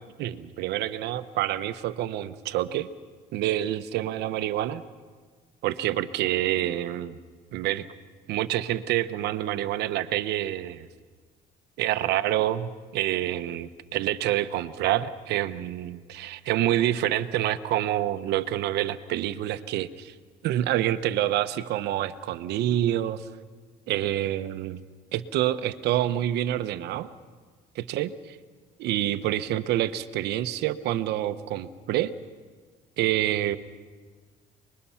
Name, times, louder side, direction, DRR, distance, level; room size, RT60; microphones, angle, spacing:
voice 1, 0.2-2.9 3.3-4.8 5.6-7.2 7.5-7.9 8.3-10.9 11.8-20.1 20.4-23.2 23.9-24.8 25.1-27.1 27.7-28.4 28.8-32.1 33.0-33.6, right 13 dB, 80° right, 11 dB, 1.0 m, -27 dB
29.5 x 21.0 x 5.8 m, 1.5 s
cardioid pair, 110°, 17 cm